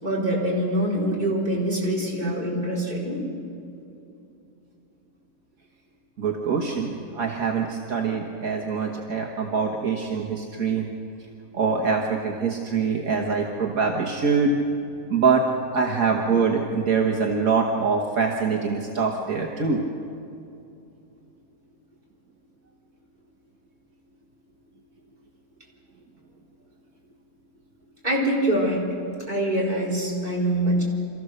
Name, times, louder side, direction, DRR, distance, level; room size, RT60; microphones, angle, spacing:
voice 1, 0.0-3.2 28.0-28.9 29.3-30.8, right 1 dB, 30° right, -3 dB, 4.6 m, -24 dB
voice 2, 6.2-10.9 11.5-14.6 15.1-19.8, right 5 dB, 70° right, 0 dB, 1.8 m, -24 dB
27.5 x 14.5 x 6.6 m, 2.7 s
omnidirectional pair, 1.5 m